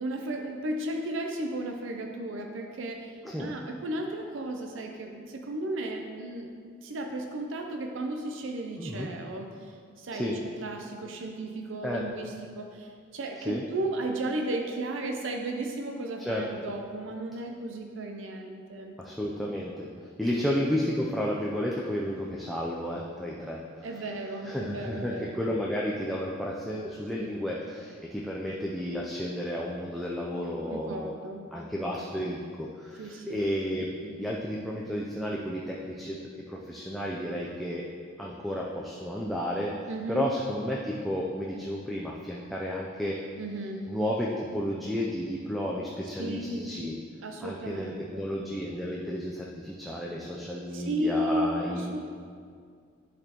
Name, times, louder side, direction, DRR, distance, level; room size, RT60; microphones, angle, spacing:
voice 1, 0.0-3.1 3.4-6.5 6.8-18.9 20.4-20.5 23.8-25.5 27.2-27.3 30.7-31.5 33.0-33.5 39.9-40.3 43.4-43.8 46.2-46.8 47.2-48.3 50.7-52.1, right 1 dB, 80° right, 3 dB, 0.5 m, -34 dB
voice 2, 3.2-3.6 8.8-9.1 10.1-10.4 11.8-12.0 13.5-13.6 16.2-16.4 19.0-19.9 20.2-23.9 24.4-31.1 31.5-36.2 36.5-37.8 38.2-39.7 40.1-43.2 43.9-46.9 47.4-52.1, equal, ahead, -4 dB, 0.4 m, -32 dB
10.5 x 4.2 x 2.9 m, 2.1 s
head